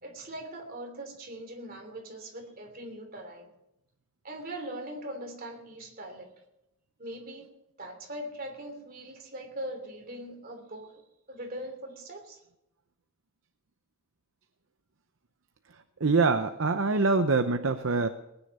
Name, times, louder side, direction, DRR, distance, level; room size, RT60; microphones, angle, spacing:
voice 1, 0.0-3.5 4.2-6.3 7.0-7.5 7.8-11.0 11.3-12.4, right 1 dB, 40° right, 3 dB, 3.1 m, -41 dB
voice 2, 16.0-18.1, right 3 dB, 60° right, 8 dB, 0.7 m, -24 dB
20.0 x 10.0 x 5.5 m, 0.88 s
head